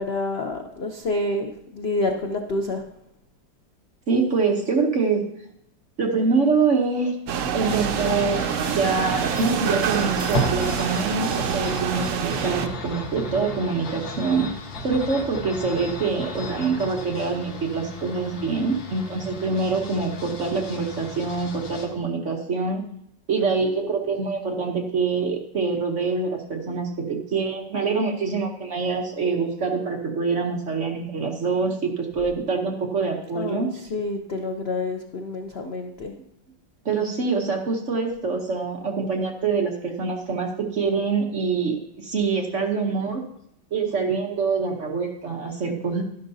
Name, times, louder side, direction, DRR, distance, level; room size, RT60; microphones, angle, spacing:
voice 1, 0.0-2.8 33.3-36.1, left 2 dB, 60° left, 3 dB, 0.6 m, -28 dB
voice 2, 4.1-5.2 6.0-7.1 7.5-14.5 14.8-22.8 23.3-33.7 36.8-43.2 43.7-46.0, right 4 dB, 50° right, 1 dB, 1.1 m, -25 dB
sound 1, 7.3-12.7, right 7 dB, 90° right, 0.6 m, -26 dB
sound 2, 7.6-21.9, left 1 dB, 80° left, 2.1 m, -34 dB
12.0 x 11.0 x 2.7 m, 0.76 s
omnidirectional pair, 2.1 m